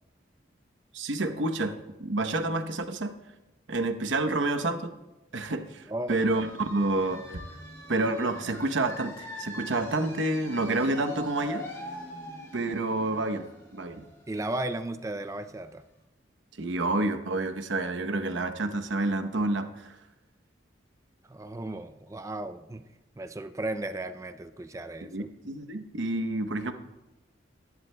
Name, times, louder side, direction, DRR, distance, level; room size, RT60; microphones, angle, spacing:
voice 1, 0.9-3.1 3.7-5.0 5.3-7.4 7.9-11.7 12.5-13.5 13.7-14.0 16.6-19.9 25.1-26.7, right 2 dB, 75° right, 7 dB, 0.9 m, -29 dB
voice 2, 5.9-6.2 14.3-15.8 21.3-22.8 23.2-25.3, right 1 dB, 15° right, 10 dB, 0.3 m, -35 dB
sound 1, 6.1-15.6, left 1 dB, 15° left, 2.1 m, -43 dB
22.0 x 11.0 x 2.2 m, 1.0 s
head